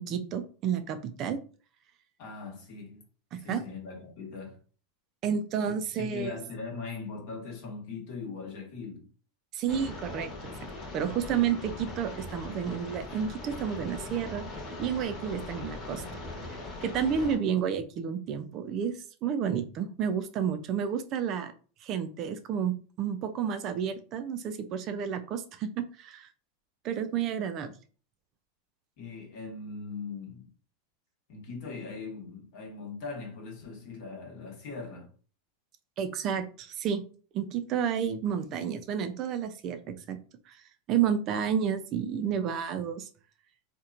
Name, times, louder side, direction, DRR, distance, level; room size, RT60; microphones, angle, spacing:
voice 1, 0.0-1.4 3.3-3.6 5.2-6.3 9.5-10.3 10.9-14.5 14.8-16.0 16.5-21.5 21.8-26.3 26.8-27.7 36.0-37.0 37.3-40.2 40.5-40.6 40.9-43.1, right 8 dB, 40° right, 0.3 m, -31 dB
voice 2, 2.2-3.0 3.4-4.6 5.7-9.1 29.0-30.5 31.3-35.1, left 4 dB, 55° left, 1.1 m, -40 dB
sound 1, 9.7-17.4, left 2 dB, 30° left, 1.0 m, -40 dB
2.9 x 2.1 x 2.4 m
supercardioid pair, 140°, 0 cm